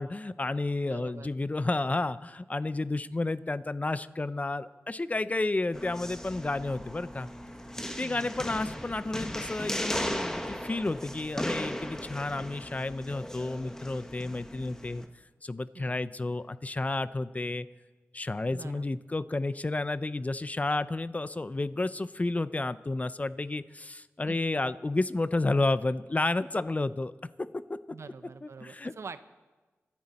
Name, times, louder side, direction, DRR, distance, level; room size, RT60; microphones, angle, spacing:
voice 1, 0.0-7.3 8.0-15.0 15.4-17.7 18.1-27.1 27.7-27.8 28.4-28.9, left 2 dB, 30° left, 15 dB, 0.5 m, -31 dB
voice 2, 0.9-1.3 8.0-8.3 15.7-16.1 18.5-18.9 24.3-24.6 27.9-29.2, right 5 dB, 70° right, 12 dB, 0.7 m, -45 dB
sound 1, 5.7-15.1, left 1 dB, 10° left, 1.3 m, -37 dB
26.0 x 10.5 x 4.2 m, 1.3 s
cardioid pair, 60°, 5 cm